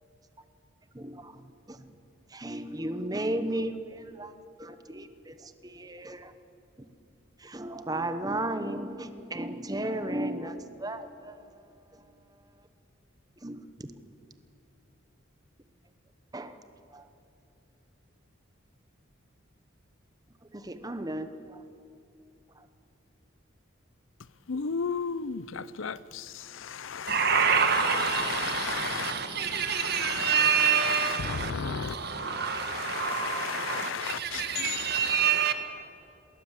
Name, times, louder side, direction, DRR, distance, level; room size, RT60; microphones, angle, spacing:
voice 1, 0.9-1.9 2.3-4.3 4.6-6.3 7.4-11.6 11.9-12.1 13.4-13.9 16.3-16.6 16.9-17.1 20.5-21.6 22.6-22.7, right 1 dB, 20° right, 1.0 m, -35 dB
voice 2, 24.5-29.1 29.4-31.9 32.3-35.2, left 6 dB, 70° left, 0.6 m, -35 dB
voice 3, 27.1-35.5, right 7 dB, 50° right, 1.7 m, -27 dB
20.0 x 19.5 x 7.5 m
head